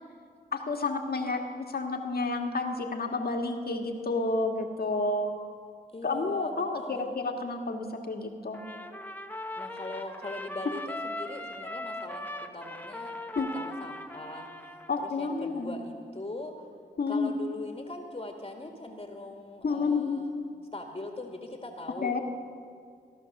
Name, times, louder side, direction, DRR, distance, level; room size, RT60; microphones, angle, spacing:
voice 1, 0.5-5.4 6.0-8.6 13.4-13.5 14.9-15.8 17.0-17.3 19.6-20.2 22.0-22.2, left 3 dB, 55° left, 3 dB, 1.8 m, -30 dB
voice 2, 5.9-7.1 9.6-13.2 13.5-16.7 17.1-20.3 20.7-22.2, left 2 dB, 30° left, 2 dB, 1.9 m, -41 dB
Trumpet, 8.5-15.1, left 1 dB, 10° left, 1.1 m, -39 dB
16.5 x 11.5 x 6.6 m, 2.2 s
supercardioid pair, 40°, 19 cm